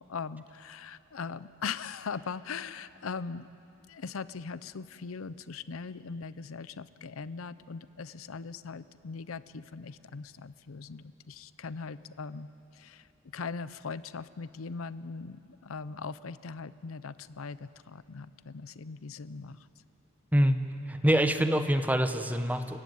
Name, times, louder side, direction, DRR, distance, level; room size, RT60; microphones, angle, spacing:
voice 1, 0.0-3.5 3.9-19.7, left 5 dB, 90° left, 16 dB, 0.6 m, -40 dB
voice 2, 20.9-22.8, equal, 10° right, 8 dB, 1.0 m, -25 dB
28.0 x 15.5 x 9.3 m, 2.7 s
head